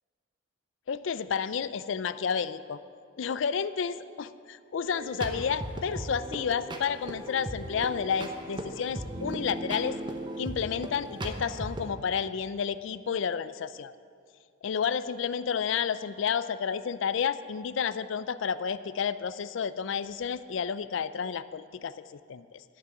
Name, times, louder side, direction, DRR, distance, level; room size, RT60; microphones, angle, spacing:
voice 1, 0.9-2.8 3.2-10.0 10.4-13.9 14.6-22.6, left 6 dB, 65° left, 15 dB, 0.4 m, -31 dB
sound 1, 4.8-11.9, right 1 dB, 25° right, 0.8 m, -37 dB
11.0 x 6.0 x 9.0 m, 2.2 s
head